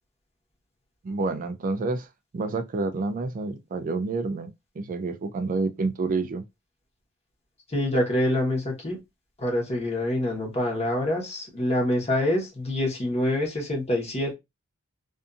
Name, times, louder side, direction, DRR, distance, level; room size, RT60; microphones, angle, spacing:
voice 1, 1.0-2.1 2.3-4.5 4.8-6.4, right 3 dB, 40° right, 0.3 m, -28 dB
voice 2, 7.7-9.0 9.4-14.3, left 1 dB, 30° left, 1.0 m, -26 dB
2.6 x 2.5 x 2.3 m
head